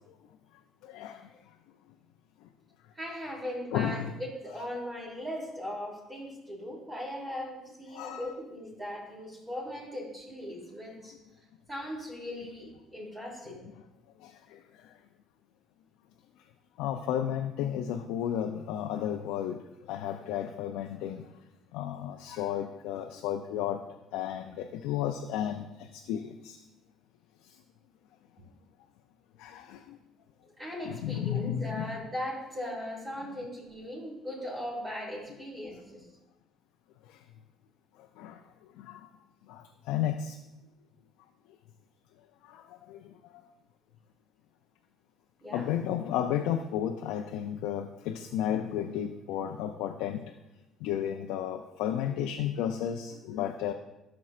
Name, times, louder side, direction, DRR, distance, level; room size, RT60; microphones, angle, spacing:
voice 1, 0.8-1.2 3.7-4.1 7.9-8.3 14.2-14.6 16.8-19.6 19.9-21.3 21.7-23.8 24.1-26.6 29.4-30.0 30.8-32.0 38.2-38.4 38.8-39.0 39.5-40.4 42.4-43.1 45.5-50.2 50.8-53.7, left 10 dB, 80° left, 5 dB, 0.4 m, -33 dB
voice 2, 2.9-11.2 11.7-13.6 30.6-36.1 45.4-45.7, equal, 25° right, -4 dB, 2.9 m, -39 dB
12.5 x 6.0 x 2.5 m, 0.97 s
supercardioid pair, 70°, 0 cm